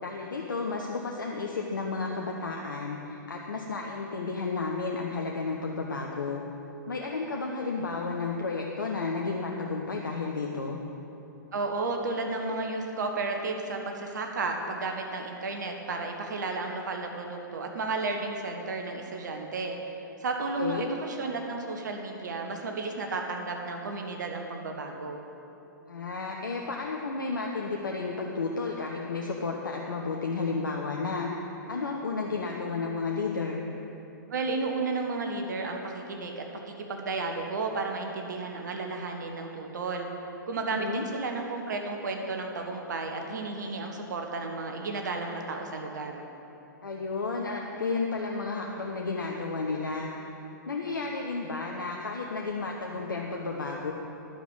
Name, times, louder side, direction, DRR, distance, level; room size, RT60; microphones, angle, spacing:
voice 1, 0.0-6.4 6.9-10.8 20.6-20.9 25.9-31.3 31.7-33.6 40.7-41.0 46.8-50.1 50.7-53.9, left 4 dB, 75° left, 0 dB, 1.0 m, -32 dB
voice 2, 11.5-19.8 20.2-25.2 34.3-40.1 40.5-46.2, right 3 dB, 65° right, 3 dB, 1.3 m, -33 dB
11.0 x 7.0 x 7.9 m, 3.0 s
figure-of-eight pair, 110°, 11 cm